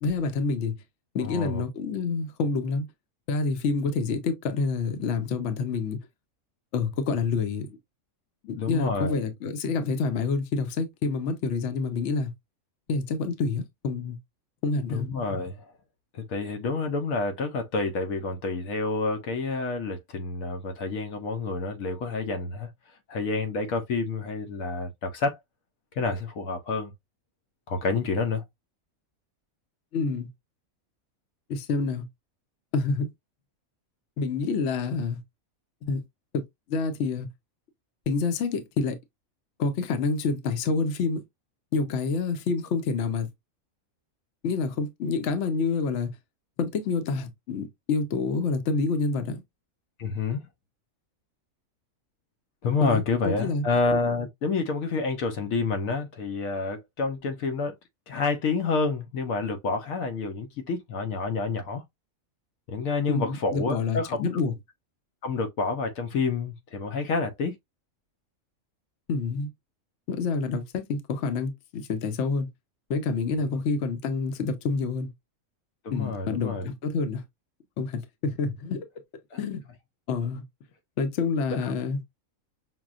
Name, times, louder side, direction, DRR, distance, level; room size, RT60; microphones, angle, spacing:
voice 1, 0.0-0.8 1.1-2.9 3.3-6.0 6.7-7.8 8.5-12.3 12.9-14.2 14.6-15.1 29.9-30.3 31.5-32.0 32.7-33.1 34.2-35.2 35.8-36.0 36.3-36.4 36.7-37.3 38.1-39.0 39.6-41.2 41.7-43.3 44.4-46.1 46.6-49.4 52.8-53.6 63.1-64.5 69.1-69.5 70.1-72.5 72.9-75.1 75.9-77.2 77.8-78.8 79.4-79.6 80.1-80.4 81.0-82.0, left 4 dB, 60° left, 0.9 m, -27 dB
voice 2, 1.2-1.6 8.5-9.2 14.9-15.7 16.1-22.7 23.1-25.4 26.0-26.9 27.7-28.4 50.0-50.4 52.6-57.7 58.1-61.8 62.7-64.4 65.2-67.5 73.4-73.6 75.8-76.7 79.3-79.4 81.6-81.7, left 4 dB, 80° left, 1.1 m, -28 dB
6.0 x 2.2 x 2.4 m
omnidirectional pair, 1.5 m